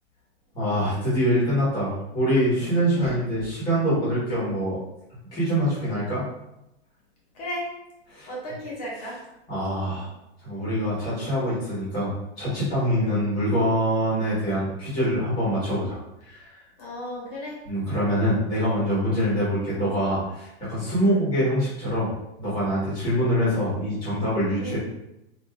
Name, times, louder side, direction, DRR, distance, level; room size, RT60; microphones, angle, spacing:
voice 1, 0.5-4.8 5.3-6.2 8.1-8.3 9.5-10.1 10.4-16.0 16.2-16.5 17.6-22.1 22.4-24.8, equal, 10° left, -10 dB, 1.4 m, -24 dB
voice 2, 7.3-7.7 8.3-9.2 13.0-13.2 16.8-17.6 21.0-21.2 24.6-24.8, equal, 35° left, -4 dB, 1.4 m, -34 dB
4.3 x 2.8 x 2.3 m, 0.88 s
supercardioid pair, 180°, 32 cm